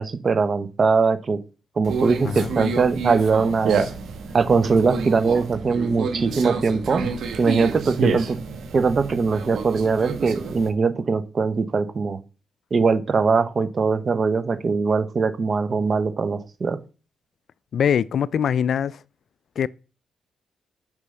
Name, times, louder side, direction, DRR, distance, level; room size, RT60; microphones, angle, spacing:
voice 1, 0.0-1.4 1.8-3.8 4.3-7.0 7.4-8.4 8.7-12.2 12.7-16.8, right 4 dB, 50° right, 1.0 m, -21 dB
Conversation, 1.8-10.7, right 4 dB, 75° right, 1.3 m, -28 dB
voice 2, 17.7-19.0 19.6-19.7, left 8 dB, 70° left, 0.3 m, -22 dB
6.8 x 5.2 x 6.6 m
supercardioid pair, 60°, 0 cm